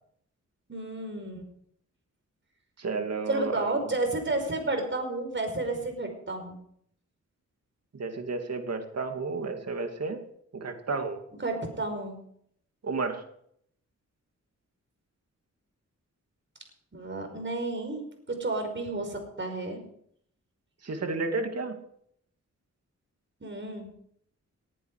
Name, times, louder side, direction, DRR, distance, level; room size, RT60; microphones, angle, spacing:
voice 1, 0.7-1.5 3.3-6.6 11.4-12.2 16.9-19.8 23.4-23.9, right 2 dB, 40° right, 5 dB, 5.3 m, -31 dB
voice 2, 2.8-3.8 7.9-10.2 10.5-11.2 12.8-13.2 20.8-21.8, right 4 dB, 55° right, 5 dB, 2.6 m, -32 dB
19.5 x 10.5 x 5.0 m, 0.69 s
cardioid pair, 80°, 30 cm